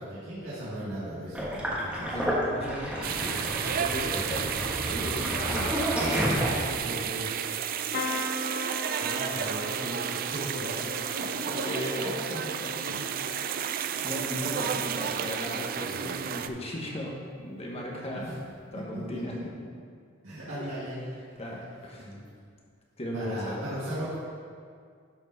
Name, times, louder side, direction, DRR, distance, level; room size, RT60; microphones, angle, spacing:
voice 1, 0.0-2.1 5.9-7.3 9.0-12.4 12.9-13.3 13.9-14.0 15.8-16.2 17.7-17.9 18.2-18.3 18.9-19.7 20.2-21.0 21.3-21.4 22.0-22.2 23.1-24.2, right 1 dB, 85° right, -11 dB, 2.0 m, -37 dB
Sink (filling or washing), 1.3-6.9, equal, 5° right, 1.3 m, -31 dB
voice 2, 1.9-5.8 11.5-13.6 14.0-18.4 18.7-19.4 20.5-20.7 21.4-22.1 23.0-23.6, equal, 30° left, -2 dB, 1.3 m, -37 dB
sound 1, 3.0-16.5, right 8 dB, 45° right, 0.3 m, -32 dB
sound 2, 7.9-15.8 16.2-16.8 18.0-18.2 18.4-18.5, left 3 dB, 50° left, 0.6 m, -41 dB
11.5 x 4.6 x 4.1 m, 2.2 s
head